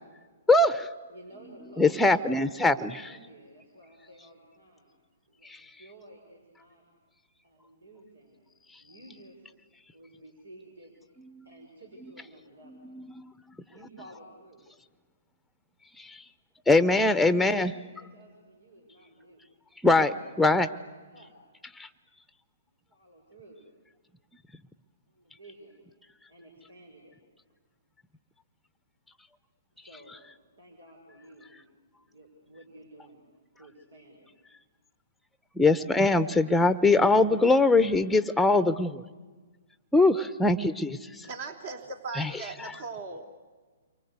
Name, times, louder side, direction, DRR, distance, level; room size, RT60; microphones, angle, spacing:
voice 1, 0.5-0.9 1.6-3.2 11.2-11.3 12.6-13.3 16.7-17.8 19.8-20.7 21.8-21.9 35.6-39.0 39.9-41.0 42.2-42.3, left 2 dB, 5° left, 12 dB, 0.8 m, -22 dB
voice 2, 1.1-4.9 5.4-6.8 7.4-8.5 8.8-9.4 9.9-10.9 11.5-12.8 13.7-14.6 17.3-19.4 21.1-21.4 22.9-23.6 25.4-25.8 26.3-27.1 29.8-30.2 30.6-31.7 32.1-33.2 33.6-34.3, right 1 dB, 85° right, 1 dB, 5.3 m, -52 dB
voice 3, 41.2-43.4, right 4 dB, 55° right, 6 dB, 3.5 m, -39 dB
29.0 x 24.0 x 8.2 m, 1.4 s
hypercardioid pair, 130°, 0 cm